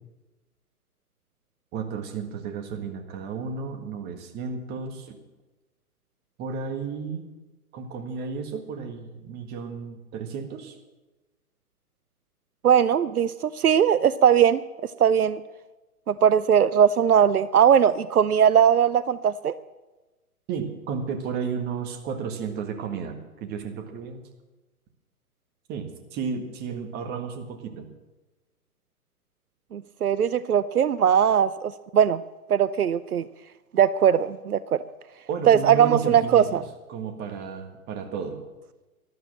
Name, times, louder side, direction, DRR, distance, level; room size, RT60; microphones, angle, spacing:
voice 1, 1.7-5.2 6.4-7.3 7.7-10.7 20.5-24.3 25.7-27.9 35.3-36.6 36.9-38.4, right 6 dB, 20° right, 5 dB, 1.7 m, -33 dB
voice 2, 12.6-14.6 15.0-15.4 16.1-19.5 29.7-32.2 32.5-33.2 33.7-34.8 35.5-36.6, right 8 dB, 75° right, 16 dB, 0.7 m, -20 dB
12.5 x 12.0 x 7.6 m, 1.1 s
figure-of-eight pair, 125°, 45 cm